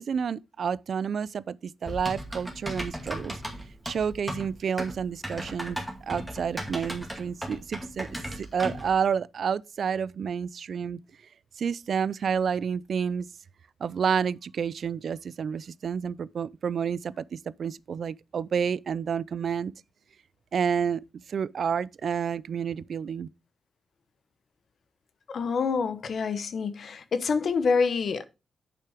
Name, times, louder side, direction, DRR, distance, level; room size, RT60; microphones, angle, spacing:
voice 1, 0.0-3.4 3.9-8.1 8.4-11.0 11.6-13.3 13.8-19.7 20.5-23.3, right 7 dB, 55° right, 0.3 m, -29 dB
Typing, 1.9-8.9, equal, ahead, 2.2 m, -36 dB
voice 2, 25.3-28.2, left 5 dB, 55° left, 0.9 m, -27 dB
8.5 x 6.8 x 3.5 m
wide cardioid pair, 155°, 0 cm